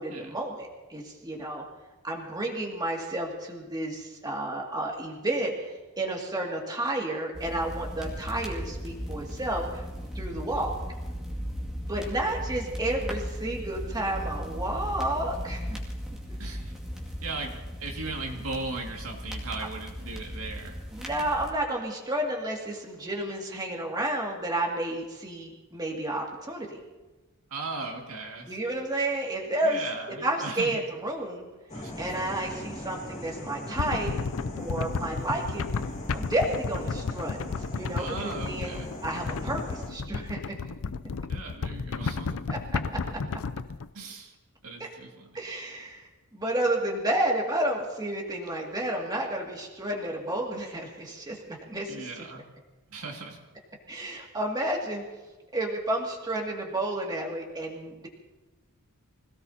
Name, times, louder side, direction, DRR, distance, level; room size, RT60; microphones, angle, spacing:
voice 1, 0.0-1.6 2.0-9.8 10.1-10.7 11.8-15.6 20.9-26.8 28.5-29.9 30.2-31.5 32.0-34.2 34.6-35.7 36.1-37.4 37.7-40.6 42.5-42.8 43.1-43.2 44.8-44.9 45.3-52.1 53.9-55.0 55.5-58.1, right 1 dB, 20° right, -1 dB, 2.3 m, -31 dB
sound 1, 7.3-21.5, equal, ahead, 2.3 m, -37 dB
voice 2, 16.4-16.7 17.2-20.8 27.5-28.6 29.6-30.8 31.7-31.9 38.0-38.9 41.3-42.4 43.9-44.3 44.6-45.4 51.9-52.5 52.9-53.4, right 3 dB, 70° right, 0 dB, 2.2 m, -37 dB
sound 2, 31.7-39.9, left 1 dB, 30° left, 2.5 m, -40 dB
sound 3, 33.8-43.9, left 4 dB, 65° left, 0.5 m, -33 dB
25.5 x 17.0 x 2.8 m, 1.2 s
head